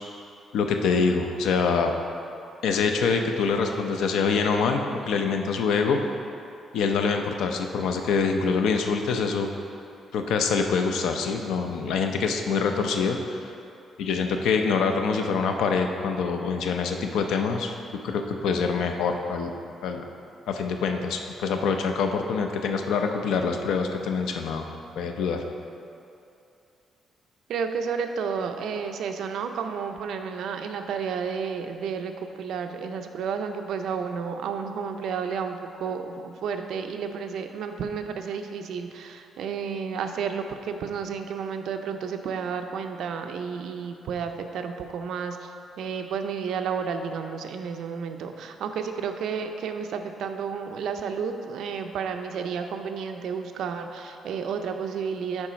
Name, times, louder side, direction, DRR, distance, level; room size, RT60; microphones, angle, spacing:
voice 1, 0.5-1.9 2.6-6.0 6.7-9.5 10.1-13.5 14.0-17.7 18.0-19.5 19.8-20.0 20.5-24.7 25.0-25.4, left 5 dB, 85° left, 5 dB, 0.6 m, -25 dB
voice 2, 27.5-45.5 45.8-55.5, right 6 dB, 75° right, 6 dB, 0.5 m, -31 dB
7.2 x 4.8 x 5.1 m, 2.7 s
cardioid pair, 160°, 0 cm